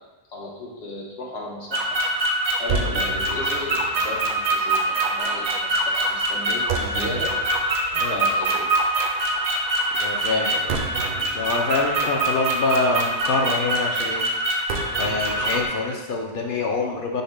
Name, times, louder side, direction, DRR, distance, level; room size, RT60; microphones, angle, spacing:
voice 1, 0.3-2.0 2.3-7.3 8.1-8.7, left 2 dB, 85° left, -3 dB, 1.3 m, -35 dB
sound 1, 1.7-15.7, right 1 dB, 65° right, 0.7 m, -24 dB
voice 2, 10.0-10.8 11.3-14.3 15.0-17.2, left 3 dB, 60° left, 0 dB, 0.7 m, -25 dB
5.3 x 2.2 x 4.6 m, 1.2 s
omnidirectional pair, 1.1 m